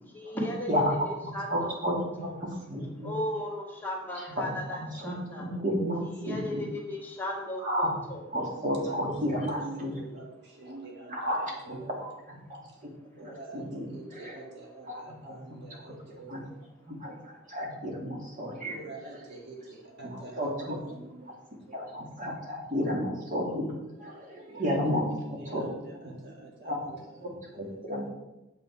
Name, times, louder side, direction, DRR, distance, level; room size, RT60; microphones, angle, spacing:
voice 1, 0.1-2.3 3.0-5.4 6.2-8.2, left 1 dB, 10° left, -3 dB, 1.9 m, -36 dB
voice 2, 0.7-1.1 1.5-3.1 4.1-6.7 7.6-7.9 8.3-9.9 10.7-10.8 11.1-12.6 13.3-14.4 14.9-15.9 16.3-16.4 16.9-18.8 20.4-20.8 21.7-25.6 25.9-26.1 26.6-28.1, equal, 45° right, -1 dB, 2.6 m, -32 dB
voice 3, 8.8-9.1 9.5-11.9 13.2-16.6 18.6-22.0 24.5-24.8 25.2-27.0 27.3-28.1, right 2 dB, 60° right, 0 dB, 1.5 m, -46 dB
8.3 x 7.5 x 4.8 m, 0.96 s
head